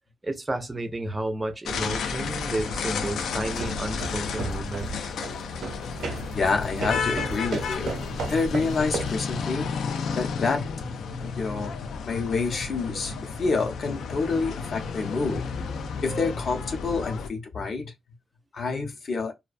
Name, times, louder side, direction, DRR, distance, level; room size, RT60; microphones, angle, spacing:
voice 1, 0.2-5.1, right 2 dB, 15° right, 0.4 m, -32 dB
sound 1, 1.7-17.3, left 5 dB, 85° left, 0.3 m, -32 dB
sound 2, 3.4-9.3, right 3 dB, 85° right, 0.7 m, -34 dB
voice 2, 6.3-15.4 16.0-17.9 18.5-19.3, left 4 dB, 45° left, 0.6 m, -28 dB
2.4 x 2.1 x 2.4 m
wide cardioid pair, 145°, 0 cm